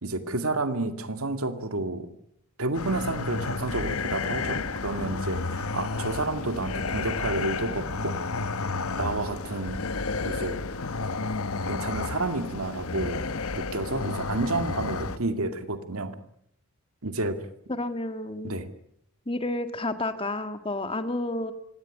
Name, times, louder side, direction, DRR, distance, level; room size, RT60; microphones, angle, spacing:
voice 1, 0.0-2.1 2.6-8.2 9.0-9.8 10.2-10.7 11.6-13.2 13.5-16.1 17.0-17.4 18.4-18.7, right 2 dB, 85° right, 9 dB, 2.3 m, -30 dB
sound 1, 2.7-15.2, left 3 dB, 85° left, 1.2 m, -31 dB
voice 2, 17.7-18.6 19.3-21.5, left 2 dB, 25° left, 9 dB, 1.8 m, -30 dB
24.5 x 17.5 x 10.0 m, 0.75 s
head